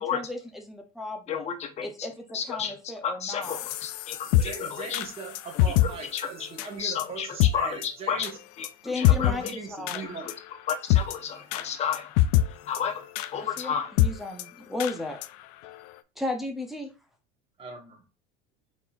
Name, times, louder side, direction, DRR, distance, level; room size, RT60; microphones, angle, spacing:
voice 1, 0.0-1.5 1.8-3.7 8.8-10.0 13.4-15.2 16.2-16.9, left 2 dB, ahead, 2 dB, 0.7 m, -35 dB
voice 2, 1.3-1.9 2.3-2.7 3.0-5.0 5.8-6.5 6.8-7.3 7.5-7.8 8.1-8.3 8.6-9.5 10.0-10.3 10.7-12.1 12.7-13.1 13.3-13.9, left 7 dB, 35° left, 4 dB, 0.9 m, -32 dB
sound 1, 3.4-5.9 6.2-6.3 6.6-6.7 7.0-7.1 7.4-7.5 7.8-7.9 8.2-8.3 8.6-8.7 9.0-9.5 9.9-10.0 10.3-10.4 10.7-11.1 11.5-11.7 11.9-12.5 12.7-12.8 13.2-13.3 13.6-13.7 14.0-14.1 14.4-14.5 14.8-14.9 15.2-15.3 15.7-15.8, left 13 dB, 75° left, 0.4 m, -23 dB
voice 3, 4.4-8.4 9.2-10.3 17.6-18.0, right 5 dB, 30° right, 1 dB, 1.5 m, -39 dB
4.2 x 3.9 x 2.4 m, 0.31 s
supercardioid pair, 125°, 19 cm